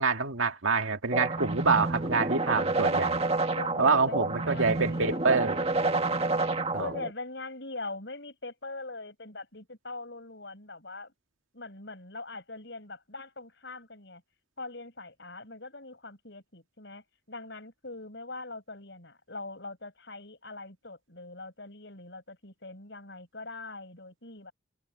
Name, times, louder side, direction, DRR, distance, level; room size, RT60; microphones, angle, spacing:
voice 1, 0.0-3.2 3.8-5.6 6.7-6.9, right 4 dB, 85° right, 2.0 m, -26 dB
sound 1, 1.1-7.1, right 2 dB, 30° right, 1.7 m, -29 dB
voice 2, 3.5-5.4 6.3-11.1 11.5-14.2 14.6-24.5, left 2 dB, 60° left, 7.2 m, -42 dB
head